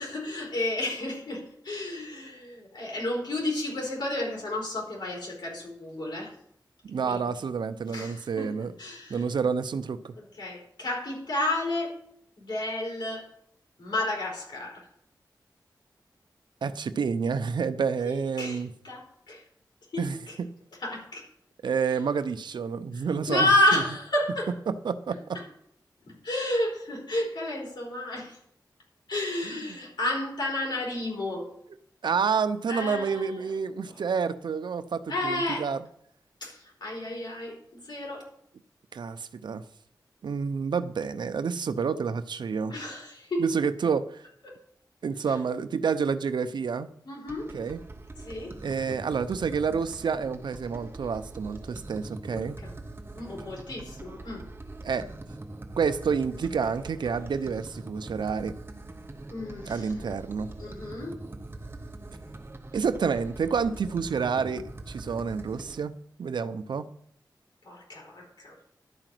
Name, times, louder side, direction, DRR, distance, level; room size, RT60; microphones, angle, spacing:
voice 1, 0.0-6.3 7.1-7.2 7.9-8.5 8.8-9.2 10.4-12.0 12.4-13.3 13.8-14.8 18.0-18.6 18.8-19.4 19.9-20.3 20.8-21.3 22.9-24.5 25.3-25.4 26.1-28.4 29.1-31.5 32.7-33.3 35.1-35.7 36.4-38.3 42.7-43.5 47.0-47.6 48.2-48.6 52.3-52.7 53.1-54.5 59.3-59.9 60.6-61.2 67.6-68.6, left 1 dB, 80° left, -2 dB, 4.5 m, -31 dB
voice 2, 6.8-8.7 9.1-10.1 16.6-18.7 20.0-20.5 21.6-23.8 24.7-25.4 32.0-35.8 38.9-39.7 40.2-42.7 43.4-44.2 45.0-46.9 47.5-47.8 48.6-52.6 54.8-55.1 55.8-58.6 59.7-60.5 62.7-66.9, right 6 dB, 90° right, 12 dB, 0.6 m, -29 dB
sound 1, 47.3-65.8, right 2 dB, 30° right, 1.0 m, -43 dB
11.5 x 4.9 x 7.6 m, 0.68 s
wide cardioid pair, 90°, 7 cm